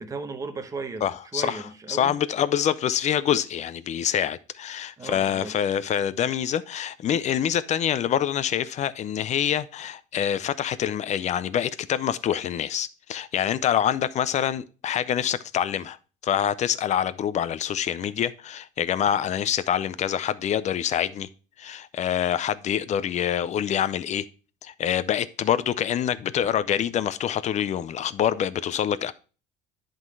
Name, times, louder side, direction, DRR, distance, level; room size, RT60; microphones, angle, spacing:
voice 1, 0.0-2.2 5.0-5.6, right 4 dB, 15° right, 0.9 m, -36 dB
voice 2, 1.0-1.6 1.9-16.0 16.2-21.3 21.6-24.3 24.6-29.1, left 9 dB, 35° left, 0.5 m, -26 dB
10.5 x 3.9 x 4.7 m
cardioid pair, 140°, 21 cm